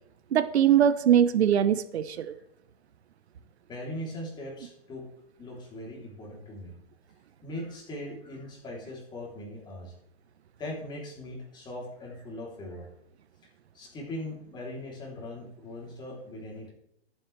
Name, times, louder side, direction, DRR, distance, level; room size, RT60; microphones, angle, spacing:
voice 1, 0.3-2.3, right 9 dB, 75° right, 13 dB, 1.0 m, -22 dB
voice 2, 3.7-5.0 5.4-6.7 7.4-9.9 10.6-12.9 13.7-16.7, left 1 dB, 15° left, -2 dB, 3.4 m, -40 dB
22.0 x 7.8 x 3.4 m, 0.80 s
hypercardioid pair, 160°, 32 cm